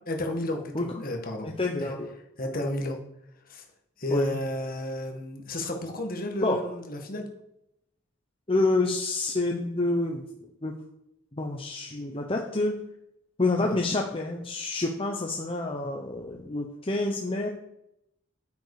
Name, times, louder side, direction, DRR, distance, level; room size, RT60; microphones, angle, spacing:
voice 1, 0.1-1.5 1.8-2.0 2.4-3.0 3.5-3.6 4.0-7.3 13.6-13.8, left 1 dB, 45° left, 3 dB, 1.8 m, -32 dB
voice 2, 1.4-2.1 4.1-4.4 6.4-6.6 8.5-10.2 10.6-10.7 11.3-12.8 13.4-17.5, left 2 dB, 25° left, 1 dB, 1.0 m, -28 dB
9.6 x 9.0 x 4.9 m, 0.81 s
head